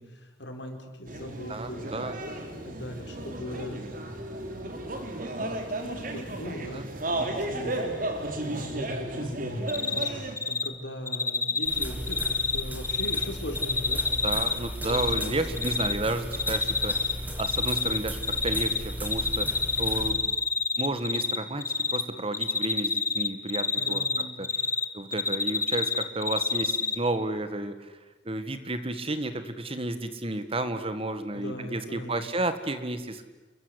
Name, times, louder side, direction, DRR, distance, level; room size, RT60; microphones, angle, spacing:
voice 1, 0.0-2.2 2.6-3.9 4.4-4.8 5.4-12.2 12.5-14.0 14.9-15.4 23.8-24.4 31.3-32.2, equal, 70° left, 4 dB, 4.8 m, -40 dB
sound 1, 1.1-10.4, right 1 dB, 50° right, 3.5 m, -34 dB
voice 2, 1.5-2.2 6.7-6.9 14.2-20.4 20.7-24.1 24.4-28.0 28.2-33.2, right 2 dB, 30° right, 10 dB, 1.8 m, -32 dB
Cricket, 9.7-10.1 10.4-10.7 11.1-13.2 13.5-15.2 15.6-15.9 16.3-17.1 17.4-18.8 19.0-21.4 21.6-22.0 22.3-24.8 25.1-26.9, left 4 dB, 15° left, 1.2 m, -27 dB
sound 2, 11.6-20.1, equal, 10° right, 3.8 m, -36 dB
29.0 x 23.0 x 8.2 m, 1.1 s
head